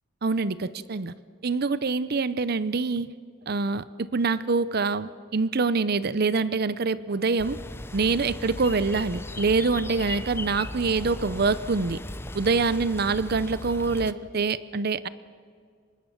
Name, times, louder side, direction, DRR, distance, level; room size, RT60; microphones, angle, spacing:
voice 1, 0.2-1.1 1.4-3.1 3.5-7.6 7.9-12.0 12.3-15.1, right 4 dB, 50° right, 16 dB, 0.6 m, -25 dB
sound 1, 7.4-14.1, left 1 dB, 10° left, 0.7 m, -37 dB
24.5 x 21.0 x 7.2 m, 2.1 s
head